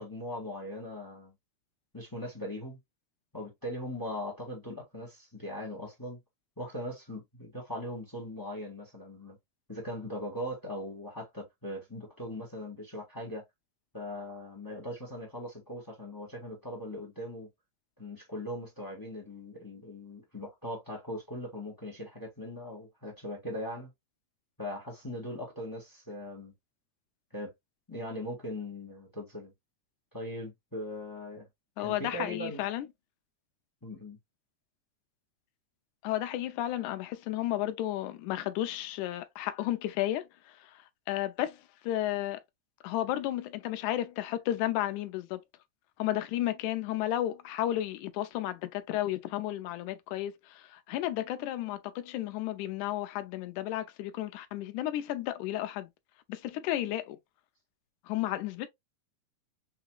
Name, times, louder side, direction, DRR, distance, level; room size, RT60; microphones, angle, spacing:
voice 1, 0.0-1.3 1.9-2.8 3.3-6.2 6.6-9.4 9.7-13.4 13.9-17.5 18.0-23.9 24.6-26.5 27.3-27.5 27.9-29.5 30.1-31.5 31.8-32.6 33.8-34.2, left 1 dB, 15° left, 0.6 m, -40 dB
voice 2, 31.8-32.9 36.0-40.8 41.1-42.4 42.8-45.4 46.0-55.9 56.3-57.2 58.1-58.7, left 13 dB, 90° left, 2.0 m, -33 dB
5.6 x 2.9 x 2.3 m
omnidirectional pair, 3.4 m